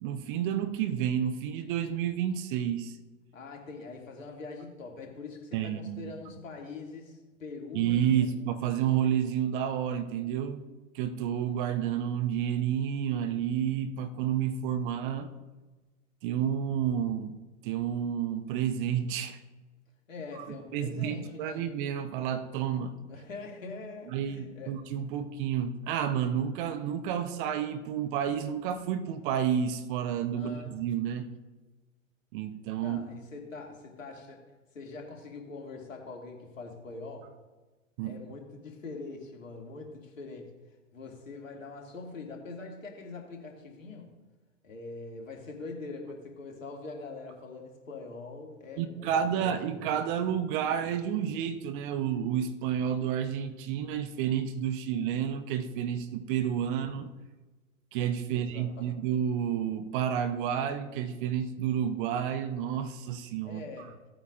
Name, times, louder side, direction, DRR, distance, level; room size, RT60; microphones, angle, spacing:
voice 1, 0.0-3.0 5.5-6.1 7.7-10.6 10.9-15.3 16.2-17.4 17.6-19.4 20.4-20.5 20.7-23.0 24.1-31.3 32.3-33.0 38.0-38.1 48.8-57.1 57.9-63.6, right 9 dB, 40° right, 10 dB, 0.9 m, -30 dB
voice 2, 3.3-8.3 20.1-21.7 23.1-24.8 30.3-30.8 32.8-34.4 34.7-37.3 38.0-40.5 40.9-44.1 44.6-49.6 58.3-59.0 63.4-64.0, left 3 dB, 75° left, 1 dB, 2.5 m, -43 dB
17.0 x 8.7 x 2.5 m, 1.2 s
figure-of-eight pair, 100°, 40 cm